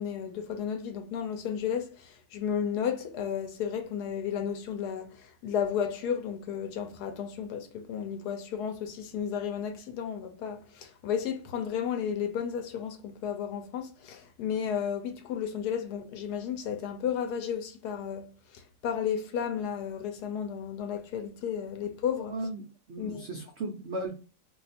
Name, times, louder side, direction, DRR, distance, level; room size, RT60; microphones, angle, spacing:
voice 1, 0.0-22.4 23.0-23.3, left 8 dB, 75° left, 1.1 m, -33 dB
voice 2, 22.3-24.1, right 2 dB, 80° right, 0.6 m, -36 dB
2.8 x 2.3 x 4.0 m
omnidirectional pair, 1.8 m